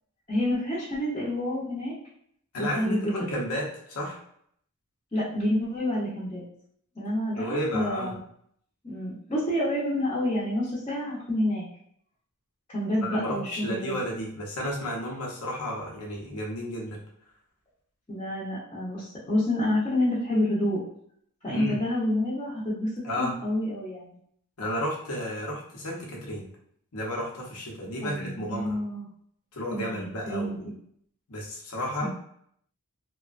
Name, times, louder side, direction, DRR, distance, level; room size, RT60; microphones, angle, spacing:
voice 1, 0.3-1.9 2.6-3.1 5.1-6.4 6.9-8.2 8.8-11.6 12.7-13.9 18.1-20.8 21.4-22.9 23.2-24.2 28.0-29.0 29.7-29.8 30.3-30.6 32.0-32.1, left 1 dB, 25° left, -10 dB, 0.8 m, -28 dB
voice 2, 2.5-4.2 7.3-8.2 13.0-17.0 21.5-21.8 23.0-23.4 24.6-26.4 26.9-28.8 29.5-30.7 31.3-32.1, equal, 85° left, -2 dB, 0.9 m, -32 dB
2.9 x 2.1 x 2.5 m, 0.66 s
head